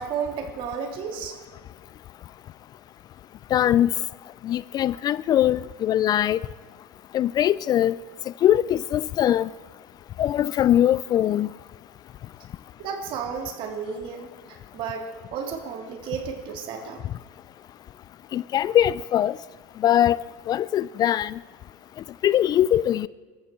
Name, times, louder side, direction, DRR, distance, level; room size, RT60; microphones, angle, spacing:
voice 1, 0.0-1.4 12.8-17.0, right 6 dB, 55° right, 4 dB, 2.9 m, -33 dB
voice 2, 3.5-3.9 4.4-6.4 7.1-8.0 8.4-9.5 10.2-11.5 18.3-19.3 19.8-20.2 20.5-21.4 22.2-23.1, left 11 dB, 40° left, 20 dB, 0.4 m, -21 dB
22.0 x 13.5 x 4.5 m, 1.5 s
hypercardioid pair, 90°, 10 cm